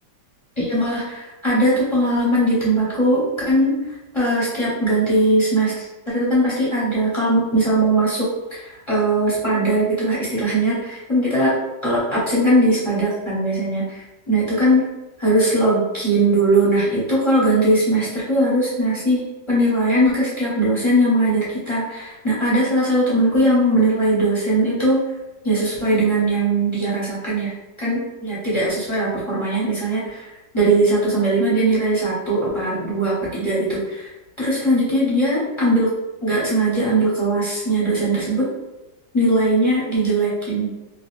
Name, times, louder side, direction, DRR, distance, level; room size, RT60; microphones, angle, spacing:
voice 1, 0.6-11.6 11.8-14.9 15.2-25.0 25.4-27.5 27.8-34.1 34.4-35.9 36.2-38.5 39.1-40.7, right 1 dB, 25° left, -8 dB, 0.7 m, -20 dB
3.6 x 2.5 x 2.5 m, 1.0 s
omnidirectional pair, 1.9 m